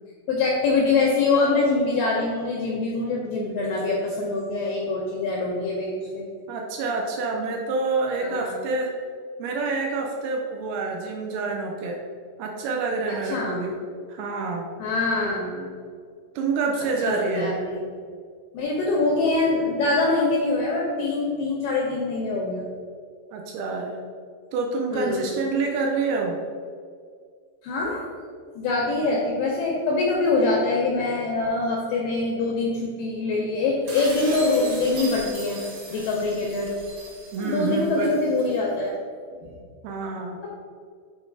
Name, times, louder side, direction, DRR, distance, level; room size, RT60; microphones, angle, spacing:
voice 1, 0.3-6.2 8.2-8.6 13.1-13.6 14.8-15.7 17.1-17.9 18.5-22.7 24.9-25.3 27.6-28.1 28.6-35.6 35.9-36.7 37.4-38.9 39.4-39.5, left 3 dB, 80° left, -2 dB, 2.0 m, -24 dB
voice 2, 6.5-8.9 9.4-12.0 12.4-13.7 14.1-14.7 16.4-17.6 23.3-24.1 24.5-26.4 37.3-38.1 39.8-40.4, right 3 dB, 80° right, 1 dB, 2.4 m, -27 dB
sound 1, 33.9-38.6, right 2 dB, 55° right, 2.2 m, -39 dB
7.5 x 3.7 x 4.6 m, 2.1 s
omnidirectional pair, 4.9 m